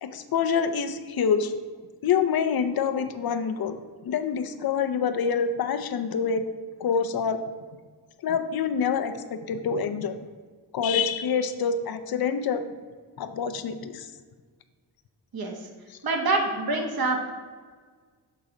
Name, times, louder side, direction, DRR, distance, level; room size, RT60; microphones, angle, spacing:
voice 1, 0.0-1.5 2.0-3.8 4.0-6.4 6.8-7.4 8.2-10.2 10.7-12.6 13.2-14.1, left 6 dB, 55° left, 9 dB, 0.6 m, -26 dB
voice 2, 15.3-15.7 16.0-17.3, right 3 dB, 55° right, 2 dB, 1.2 m, -26 dB
6.6 x 3.9 x 4.9 m, 1.6 s
cardioid pair, 95°, 44 cm